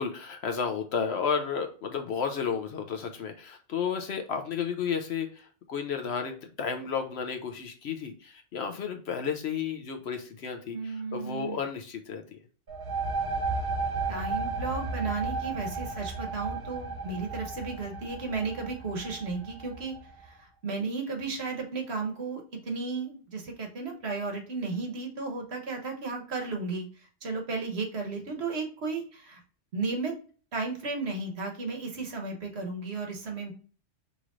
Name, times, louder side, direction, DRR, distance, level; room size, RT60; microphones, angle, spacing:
voice 1, 0.0-12.4, left 6 dB, 65° left, 5 dB, 0.9 m, -32 dB
voice 2, 10.7-11.6 14.1-19.9 20.2-26.9 27.2-29.4 29.7-30.1 30.5-33.5, right 4 dB, 60° right, 2 dB, 1.3 m, -34 dB
sound 1, 12.7-20.1, right 3 dB, 45° right, 1.1 m, -33 dB
5.3 x 3.1 x 2.5 m, 0.40 s
omnidirectional pair, 1.3 m